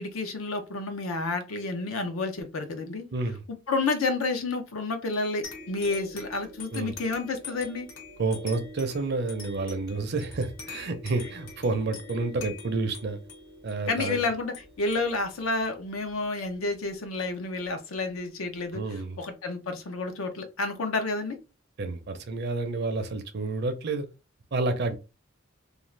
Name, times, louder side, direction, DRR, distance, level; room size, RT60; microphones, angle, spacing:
voice 1, 0.0-3.1 3.7-7.9 13.9-21.4, left 3 dB, 80° left, 0.6 m, -30 dB
voice 2, 3.1-3.4 6.7-6.9 8.2-13.2 13.6-14.2 18.7-19.2 21.8-24.1 24.5-25.0, right 3 dB, 50° right, 0.5 m, -29 dB
sound 1, 5.4-16.5, left 3 dB, 60° left, 1.1 m, -45 dB
2.5 x 2.4 x 3.1 m
head